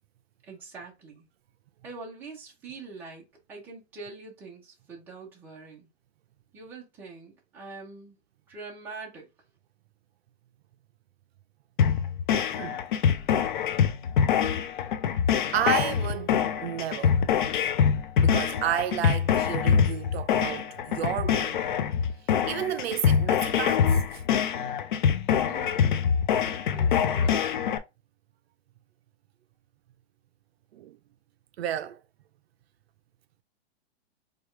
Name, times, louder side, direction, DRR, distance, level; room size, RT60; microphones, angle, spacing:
voice 1, 0.4-1.3 1.8-5.9 6.5-8.2 8.5-9.3 25.4-27.5, right 4 dB, 5° right, 0.6 m, -44 dB
sound 1, 11.8-27.8, left 7 dB, 50° left, 0.5 m, -24 dB
voice 2, 12.5-12.8 15.5-17.2 18.2-21.6 22.4-24.2 30.7-31.0 31.6-32.0, right 11 dB, 70° right, 0.5 m, -32 dB
4.7 x 2.4 x 3.2 m
supercardioid pair, 175°, 33 cm